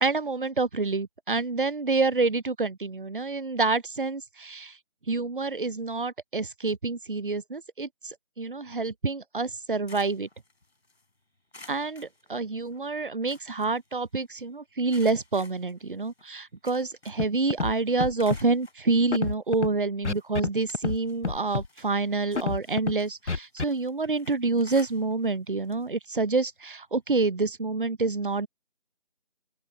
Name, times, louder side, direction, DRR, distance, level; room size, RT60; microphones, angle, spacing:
voice 1, 0.0-4.7 5.1-10.3 11.7-28.5, right 3 dB, 50° right, 0.6 m, -27 dB
sound 1, 9.5-11.0 11.5-12.8 13.1-14.4 14.9-17.4 17.7-18.8 19.5-19.6 20.1-21.2 21.6-25.4 25.6-25.9 26.2-26.3 27.5-27.6, left 2 dB, 65° left, 4.1 m, -52 dB
Scratching (performance technique), 17.2-17.3 17.5-17.7 18.0-18.4 19.1-19.7 20.0-20.5 20.7-21.0 21.2-21.7 22.4-22.9 23.3-23.7, left 4 dB, 80° left, 1.2 m, -28 dB
open air
figure-of-eight pair, 170°, 34 cm